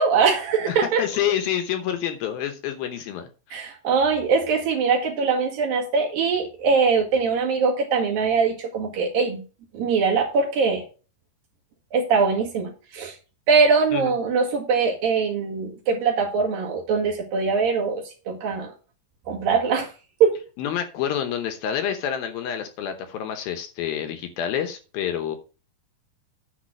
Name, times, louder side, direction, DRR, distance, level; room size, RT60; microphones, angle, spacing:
voice 1, 0.0-1.0 3.5-9.4 9.7-10.8 11.9-13.1 13.5-18.7 19.3-19.9 20.2-20.4, right 5 dB, 60° right, -1 dB, 3.3 m, -22 dB
voice 2, 0.7-3.6 13.9-14.2 20.6-25.4, left 9 dB, 75° left, 8 dB, 2.4 m, -28 dB
10.0 x 4.0 x 6.4 m, 0.34 s
omnidirectional pair, 4.9 m